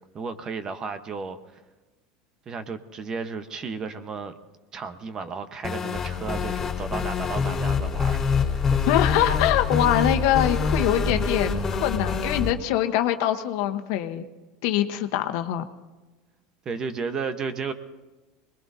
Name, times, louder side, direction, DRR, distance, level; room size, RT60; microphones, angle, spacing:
voice 1, 0.1-1.6 2.4-4.3 4.7-9.1 9.4-9.5 16.6-17.7, right 5 dB, 30° right, 9 dB, 1.1 m, -34 dB
sound 1, 5.6-12.5, left 5 dB, 20° left, 3.8 m, -25 dB
voice 2, 8.9-14.3 14.6-15.6, left 12 dB, 65° left, 7 dB, 1.2 m, -24 dB
24.5 x 21.0 x 2.8 m, 1.2 s
supercardioid pair, 115°, 2 cm